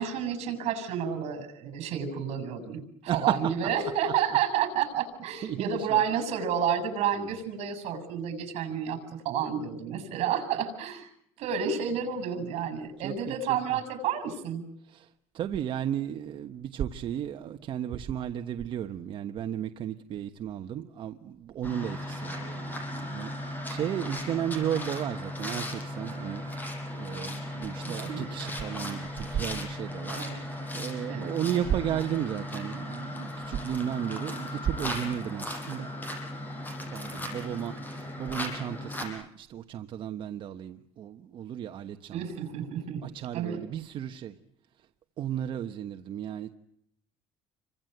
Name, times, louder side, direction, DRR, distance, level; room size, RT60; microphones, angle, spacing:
voice 1, 0.0-11.1 11.4-14.6 27.9-28.5 30.2-30.4 31.1-31.3 42.1-43.0 43.3-43.6, right 8 dB, 70° right, 7.1 m, -30 dB
voice 2, 3.1-3.7 4.1-4.4 5.4-6.0 7.1-7.4 13.0-13.8 14.8-26.5 26.9-35.9 36.9-42.2 43.0-44.4 44.8-44.9 45.2-46.6, right 10 dB, 50° right, 1.3 m, -34 dB
sound 1, 21.6-39.0, left 1 dB, 15° left, 7.0 m, -37 dB
29.5 x 24.5 x 8.0 m
cardioid pair, 155°, 11 cm